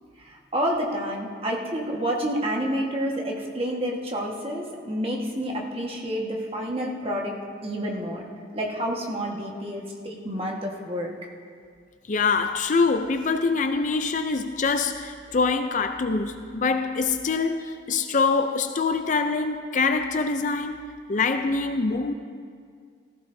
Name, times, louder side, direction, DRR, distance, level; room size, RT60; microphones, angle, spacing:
voice 1, 0.2-7.4 7.6-11.1, equal, 30° right, 1.5 m, -29 dB
voice 2, 12.1-20.8 21.1-22.1, left 4 dB, 40° left, 0.4 m, -24 dB
18.0 x 15.5 x 2.7 m
head